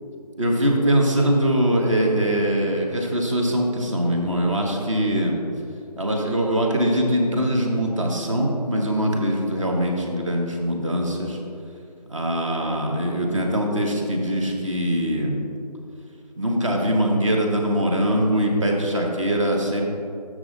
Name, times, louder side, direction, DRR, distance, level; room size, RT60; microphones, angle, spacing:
voice 1, 0.4-5.4 6.0-11.4 12.1-15.4 16.4-19.9, equal, 50° right, 0 dB, 1.1 m, -22 dB
7.5 x 6.2 x 3.8 m, 2.6 s
figure-of-eight pair, 170°, 21 cm